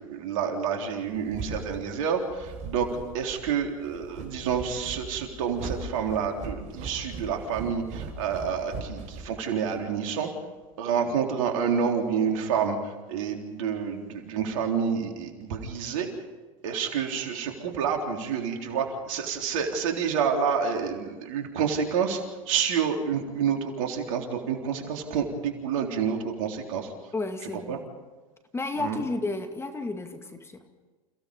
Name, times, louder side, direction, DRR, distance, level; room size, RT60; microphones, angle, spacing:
voice 1, 0.0-2.9 3.1-10.3 10.8-16.1 16.6-22.2 22.5-26.9 27.7-27.8 28.8-29.0, right 7 dB, 70° right, 3 dB, 3.7 m, -28 dB
sound 1, 0.9-9.8, right 4 dB, 45° right, 5.0 m, -39 dB
voice 2, 27.1-27.9 28.5-30.6, left 3 dB, 15° left, 6 dB, 2.2 m, -32 dB
29.5 x 17.0 x 5.4 m, 1.3 s
hypercardioid pair, 95°, 18 cm